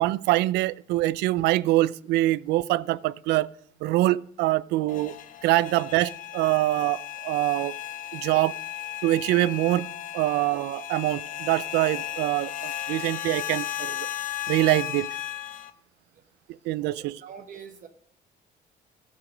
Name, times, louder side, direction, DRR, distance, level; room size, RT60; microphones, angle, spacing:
voice 1, 0.0-3.5 3.8-5.1 5.4-7.8 8.1-8.6 9.0-14.1 14.5-15.1 16.7-17.2, right 17 dB, 85° right, 0.4 m, -24 dB
sound 1, 4.9-15.7, left 12 dB, 50° left, 0.8 m, -35 dB
voice 2, 17.0-17.9, right 7 dB, 50° right, 1.0 m, -44 dB
14.5 x 6.8 x 5.1 m
cardioid pair, 110°, 17 cm